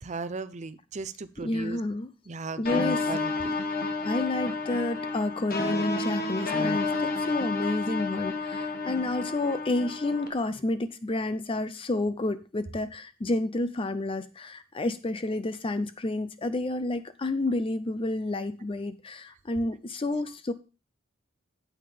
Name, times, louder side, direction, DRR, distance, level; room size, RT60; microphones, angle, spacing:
voice 1, 0.0-1.8 2.3-2.8 3.1-3.6 8.9-9.2, right 3 dB, 35° right, 0.6 m, -37 dB
voice 2, 1.4-2.1 2.6-3.1 4.0-20.5, left 2 dB, 25° left, 0.5 m, -30 dB
sound 1, 2.7-10.3, left 3 dB, 45° left, 1.6 m, -30 dB
8.8 x 8.6 x 3.4 m
head